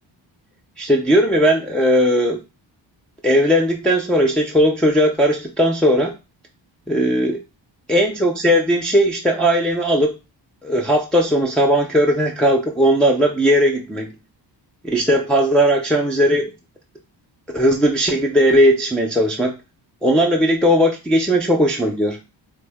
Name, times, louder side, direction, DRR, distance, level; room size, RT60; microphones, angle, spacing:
voice 1, 0.8-2.4 3.2-6.1 6.9-7.4 7.9-10.1 10.6-14.1 14.9-16.5 17.5-19.6 20.0-22.2, equal, ahead, 0 dB, 0.4 m, -17 dB
3.6 x 2.1 x 3.4 m, 0.28 s
wide cardioid pair, 105°, 45 cm